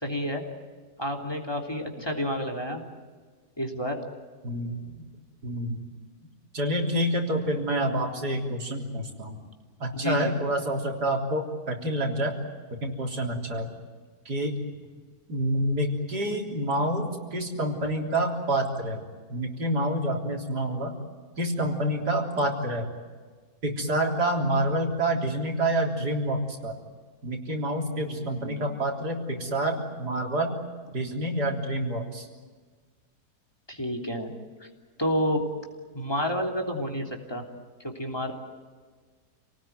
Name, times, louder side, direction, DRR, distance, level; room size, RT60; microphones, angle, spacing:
voice 1, 0.0-0.4 1.0-2.8 3.6-4.0 9.9-10.3 28.0-28.6 33.7-34.3 35.0-35.4 35.9-37.4 38.0-38.3, equal, 15° left, 2 dB, 3.2 m, -30 dB
voice 2, 4.4-5.0 5.4-5.8 6.5-9.4 9.8-12.4 12.8-13.7 14.3-14.6 15.3-19.0 19.3-21.0 21.4-22.9 23.6-26.8 27.2-30.5 30.9-32.3, right 1 dB, 85° right, 1 dB, 4.2 m, -28 dB
28.5 x 19.0 x 9.4 m, 1.5 s
omnidirectional pair, 1.7 m